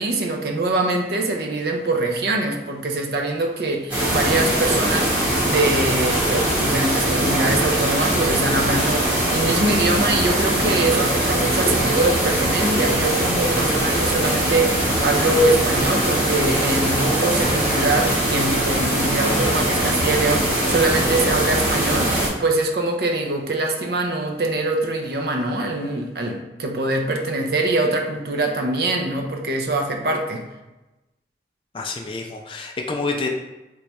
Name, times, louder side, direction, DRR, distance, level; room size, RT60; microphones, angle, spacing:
voice 1, 0.0-30.4, right 2 dB, 60° right, 3 dB, 0.5 m, -23 dB
sound 1, 3.9-22.3, right 1 dB, 10° right, 1.0 m, -21 dB
voice 2, 31.7-33.3, left 3 dB, 30° left, 2 dB, 0.3 m, -28 dB
3.0 x 2.3 x 4.1 m, 1.0 s
head